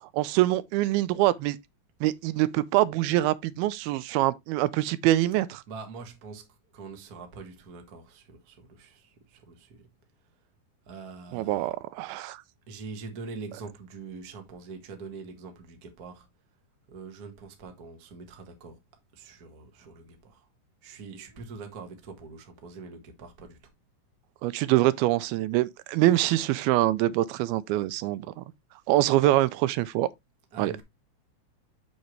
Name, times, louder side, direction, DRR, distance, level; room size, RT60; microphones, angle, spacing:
voice 1, 0.1-1.6 2.0-5.6 11.3-12.4 24.4-28.4 28.9-30.1 30.6-30.7, right 16 dB, 85° right, 2.4 m, -24 dB
voice 2, 5.7-6.5 6.7-9.9 10.9-11.7 12.7-16.3 16.9-18.8 19.1-20.5 20.8-23.6 30.5-30.8, right 4 dB, 55° right, 1.0 m, -43 dB
6.9 x 6.5 x 3.1 m
omnidirectional pair, 4.4 m